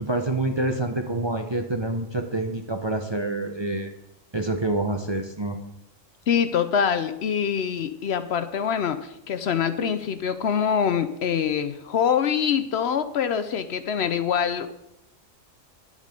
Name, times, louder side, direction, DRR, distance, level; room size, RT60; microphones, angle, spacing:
voice 1, 0.0-3.9 4.3-5.6, right 2 dB, 25° right, 4 dB, 0.6 m, -27 dB
voice 2, 6.3-14.8, left 7 dB, 65° left, 11 dB, 0.8 m, -24 dB
9.7 x 8.3 x 5.2 m, 0.82 s
omnidirectional pair, 1.3 m